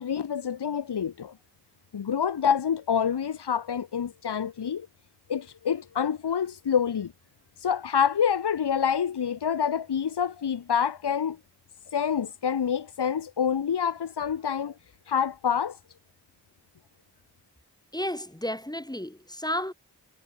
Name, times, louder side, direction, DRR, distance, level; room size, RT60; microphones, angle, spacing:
voice 1, 0.0-1.3 1.9-4.9 5.3-7.1 7.6-11.4 11.9-14.7 15.1-15.8, left 7 dB, 80° left, 2.3 m, -27 dB
voice 2, 17.9-19.7, left 1 dB, 10° left, 5.8 m, -32 dB
cardioid pair, 45°, 40 cm